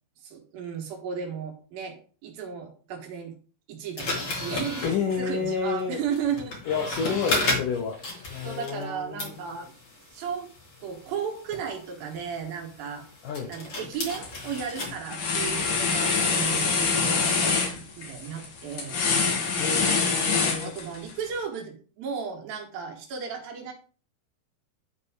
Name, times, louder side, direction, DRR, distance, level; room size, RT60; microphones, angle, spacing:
voice 1, 0.2-3.3 3.7-4.9 5.2-6.6 8.4-9.7 10.1-10.5 10.8-13.1 13.4-19.2 20.5-23.7, right 7 dB, 65° right, 2.9 m, -35 dB
sound 1, 4.0-8.9 9.2-14.9, left 2 dB, 40° left, 2.8 m, -34 dB
voice 2, 4.8-6.0 6.7-8.0 8.3-9.4 13.2-13.5 19.6-20.7, left 6 dB, 80° left, 1.8 m, -30 dB
sound 2, 13.9-14.3 14.6-21.1, left 4 dB, 55° left, 2.9 m, -25 dB
11.0 x 4.2 x 4.9 m
omnidirectional pair, 4.9 m